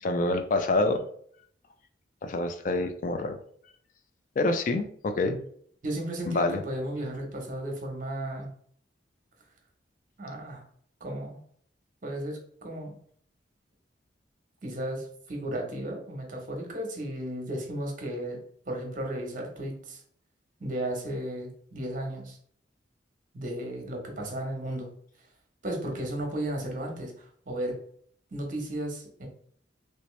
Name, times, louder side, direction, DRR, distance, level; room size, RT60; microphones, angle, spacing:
voice 1, 0.0-1.0 2.2-3.4 4.4-5.4 6.3-6.6, left 2 dB, 45° left, 8 dB, 0.3 m, -27 dB
voice 2, 5.8-8.5 10.2-10.6 11.0-11.4 12.0-12.9 14.6-18.4 18.7-20.0 20.6-22.4 23.3-24.9 25.6-27.8 28.3-29.3, right 1 dB, 45° right, 1 dB, 0.9 m, -34 dB
3.2 x 2.9 x 3.1 m, 0.62 s
head